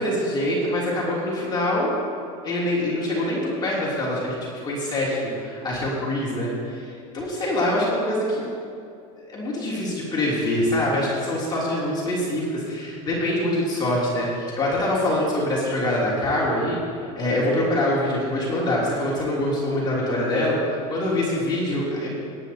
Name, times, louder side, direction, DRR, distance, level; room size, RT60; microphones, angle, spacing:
voice 1, 0.0-1.9 2.4-4.3 4.6-8.5 9.2-16.8 17.2-22.1, left 1 dB, 20° left, -6 dB, 3.3 m, -24 dB
18.5 x 10.5 x 3.0 m, 2.5 s
supercardioid pair, 120°, 20 cm